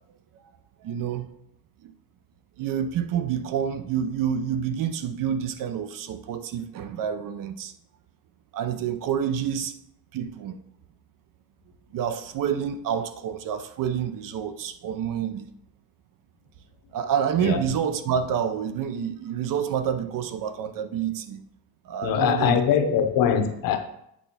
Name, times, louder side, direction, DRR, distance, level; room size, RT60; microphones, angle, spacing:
voice 1, 0.8-1.3 1.8-1.9 2.6-7.7 8.5-9.8 10.1-10.6 11.9-15.5 16.9-21.4 21.8-23.0, right 8 dB, 60° right, 0.7 m, -28 dB
voice 2, 22.0-23.8, left 8 dB, 60° left, 0.9 m, -22 dB
8.5 x 3.4 x 5.7 m
cardioid pair, 170°, 38 cm